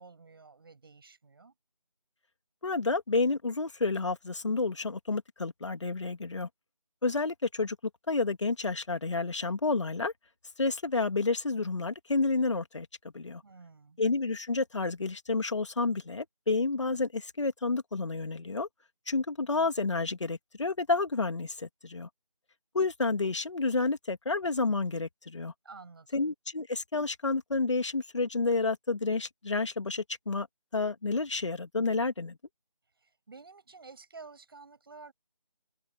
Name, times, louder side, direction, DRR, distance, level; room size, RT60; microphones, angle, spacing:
voice 1, 0.0-1.5 13.4-14.0 25.6-26.2 33.0-35.1, right 4 dB, 40° right, 6.7 m, -51 dB
voice 2, 2.6-6.5 7.0-7.8 8.1-10.1 10.6-12.9 13.1-13.4 14.0-18.7 19.1-22.1 22.7-25.5 26.1-30.5 30.7-32.4, left 3 dB, 50° left, 2.7 m, -30 dB
open air
figure-of-eight pair, 170°, 19 cm